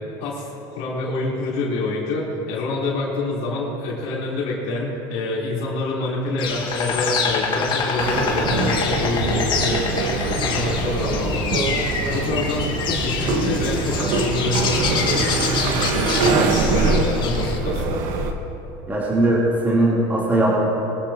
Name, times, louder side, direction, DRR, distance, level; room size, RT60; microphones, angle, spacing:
voice 1, 0.2-17.9, left 2 dB, 65° left, -5 dB, 3.7 m, -27 dB
Insect, 6.4-17.6, left 5 dB, 40° left, 1.8 m, -26 dB
sound 1, 8.0-18.3, right 3 dB, 75° right, 1.5 m, -23 dB
voice 2, 18.9-20.6, right 1 dB, 15° right, -7 dB, 3.3 m, -19 dB
22.5 x 13.0 x 2.9 m, 2.9 s
supercardioid pair, 135°, 12 cm